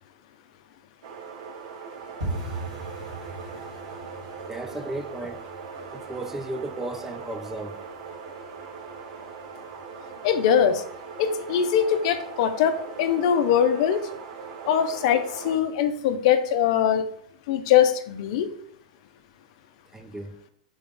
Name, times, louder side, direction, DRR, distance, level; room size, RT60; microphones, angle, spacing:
sound 1, 1.0-15.6, right 5 dB, 60° right, 0.6 m, -40 dB
sound 2, 2.2-12.9 13.2-13.9 14.1-14.4 14.7-15.1 15.4-15.5 16.0-16.5 16.8-16.9 17.4-17.5, right 2 dB, 80° right, 1.7 m, -41 dB
voice 1, 4.4-5.4 5.9-7.8 19.9-20.4, right 2 dB, 10° right, 0.4 m, -35 dB
voice 2, 10.2-10.8 11.2-14.1 14.6-17.0 17.5-18.5, left 8 dB, 55° left, 0.5 m, -22 dB
3.7 x 3.4 x 3.6 m
hypercardioid pair, 110°, 4 cm